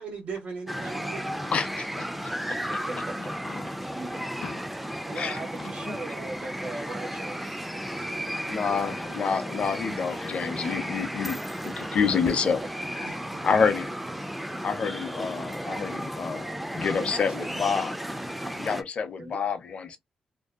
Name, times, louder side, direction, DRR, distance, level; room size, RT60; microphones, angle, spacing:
voice 1, 0.0-1.5 8.3-9.0 13.0-13.5, right 4 dB, 90° right, 1.1 m, -40 dB
sound 1, 0.7-18.8, equal, 5° right, 0.3 m, -34 dB
voice 2, 1.5-2.1 3.5-3.6 4.4-4.6 4.9-6.0 8.5-11.4 11.8-12.6 13.0-13.1 13.4-13.9 14.6-17.9 18.5-20.0, left 6 dB, 55° left, 0.5 m, -28 dB
voice 3, 2.3-3.4 5.0-8.1 11.8-11.9 17.0-17.7 19.2-19.4, right 3 dB, 45° right, 0.7 m, -40 dB
2.6 x 2.2 x 2.3 m
cardioid pair, 110°, 2 cm